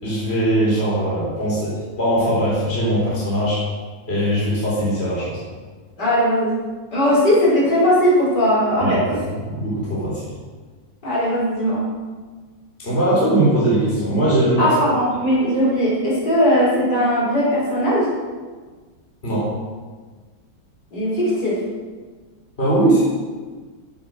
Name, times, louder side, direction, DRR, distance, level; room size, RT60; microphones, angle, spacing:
voice 1, 0.0-1.7 2.0-3.6 4.1-5.4 8.8-9.2 9.5-10.3 12.8-14.7 19.2-19.5 22.6-23.0, right 1 dB, 30° left, -7 dB, 4.5 m, -20 dB
voice 2, 6.0-6.5 6.9-9.2 11.0-11.8 14.6-18.1 20.9-21.6, equal, 55° left, -8 dB, 6.4 m, -18 dB
16.5 x 8.3 x 6.5 m, 1.4 s
omnidirectional pair, 2.1 m